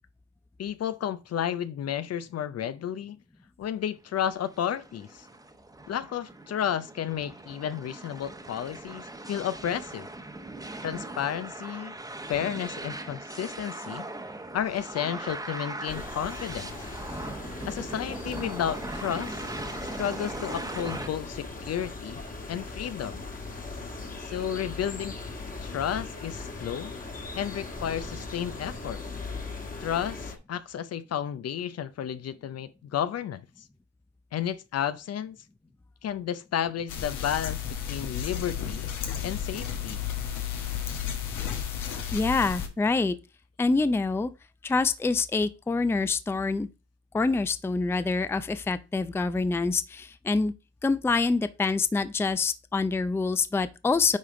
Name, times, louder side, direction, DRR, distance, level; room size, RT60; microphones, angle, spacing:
voice 1, 0.6-3.2 3.6-5.3 5.9-10.1 10.8-11.9 12.3-14.0 14.5-16.7 17.7-19.4 20.0-22.2 22.5-23.2 24.3-25.2 25.6-26.9 27.4-29.0 29.8-33.4 34.3-35.4 36.0-38.9 39.2-40.0, left 9 dB, 55° left, 0.6 m, -32 dB
sound 1, 4.2-21.1, right 2 dB, 10° right, 1.0 m, -39 dB
sound 2, 15.9-30.4, left 3 dB, 30° left, 1.5 m, -39 dB
sound 3, 36.9-42.7, left 8 dB, 85° left, 1.3 m, -33 dB
voice 2, 42.1-43.2 43.6-44.3 44.6-46.7 47.1-50.5 50.8-54.2, left 3 dB, 10° left, 0.4 m, -26 dB
9.4 x 3.4 x 3.7 m
cardioid pair, 80°, 30 cm